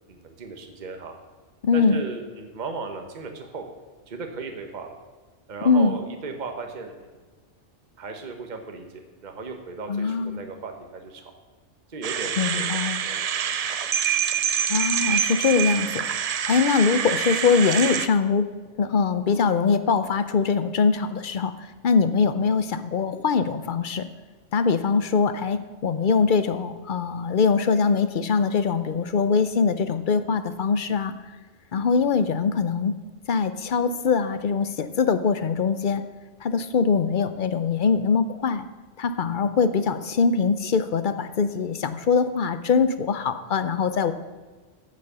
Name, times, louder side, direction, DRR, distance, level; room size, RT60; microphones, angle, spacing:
voice 1, 0.1-1.2 1.7-3.6 4.1-4.9 5.5-7.2 8.0-11.3 11.9-13.6, right 4 dB, 40° right, 4 dB, 1.1 m, -36 dB
voice 2, 1.6-2.0 5.6-5.9 9.9-10.4 12.4-13.0 14.7-16.0 16.5-18.5 18.8-21.5 21.8-24.1 24.5-31.1 31.7-33.0 33.3-36.0 36.4-38.7 39.0-44.1, left 5 dB, 55° left, 11 dB, 0.7 m, -22 dB
sound 1, 12.0-18.1, right 8 dB, 70° right, 0.3 m, -26 dB
8.8 x 7.5 x 6.8 m, 1.4 s
omnidirectional pair, 1.2 m